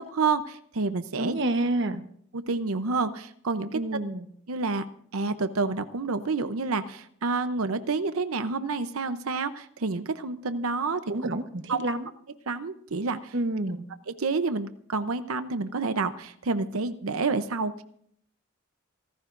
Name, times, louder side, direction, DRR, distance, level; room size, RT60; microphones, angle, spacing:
voice 1, 0.0-1.4 2.3-3.8 4.5-4.8 5.1-11.4 11.7-11.8 12.5-13.3 14.1-17.8, right 4 dB, 85° right, 10 dB, 0.7 m, -29 dB
voice 2, 1.2-2.0 3.7-4.3 11.1-12.1 13.3-13.8, right 1 dB, 55° right, 9 dB, 1.0 m, -28 dB
27.5 x 14.5 x 2.6 m, 0.65 s
head